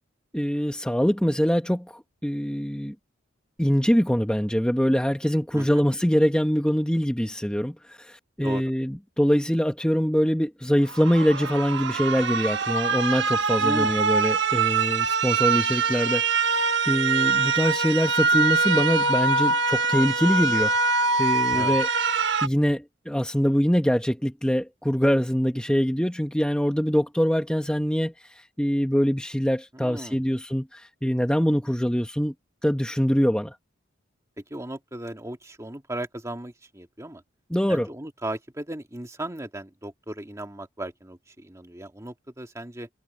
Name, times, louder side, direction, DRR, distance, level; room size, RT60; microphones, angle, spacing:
voice 1, 0.3-2.9 3.6-21.9 22.4-32.3 32.6-33.5 37.5-37.9, equal, 5° left, 1.3 m, -24 dB
voice 2, 5.5-5.8 8.4-8.6 13.6-14.1 21.5-21.8 29.7-30.3 34.4-37.2 37.7-42.9, right 1 dB, 15° right, 1.9 m, -36 dB
sound 1, 10.9-22.5, right 4 dB, 65° right, 1.4 m, -23 dB
head